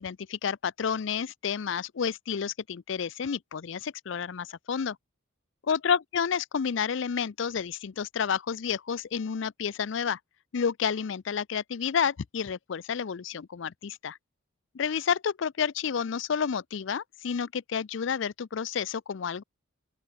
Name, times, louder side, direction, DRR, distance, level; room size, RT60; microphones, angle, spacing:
voice 1, 0.0-5.0 5.7-10.2 10.5-14.2 14.7-19.4, left 7 dB, 65° left, 0.5 m, -30 dB
open air
head